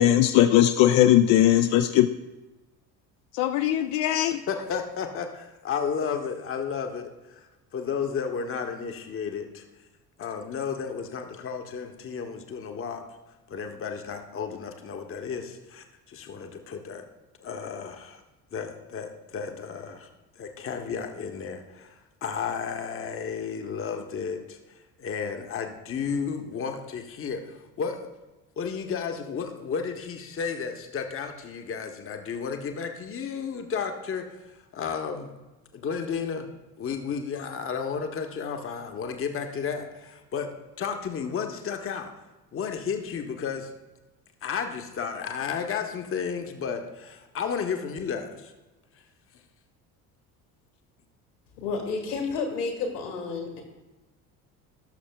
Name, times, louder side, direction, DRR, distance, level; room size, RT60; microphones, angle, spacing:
voice 1, 0.0-2.1 3.3-4.4, left 12 dB, 45° left, 8 dB, 0.4 m, -19 dB
voice 2, 4.5-7.5 7.7-9.6 10.2-13.0 13.5-17.0 17.4-18.2 18.5-20.1 20.4-28.1 28.6-35.3 35.7-36.5 36.8-42.1 42.5-43.7 44.4-48.5, left 6 dB, 25° left, 5 dB, 0.9 m, -33 dB
voice 3, 51.6-53.6, left 4 dB, 70° left, 2 dB, 1.9 m, -30 dB
17.5 x 6.6 x 2.2 m, 1.1 s
figure-of-eight pair, 55°, 47 cm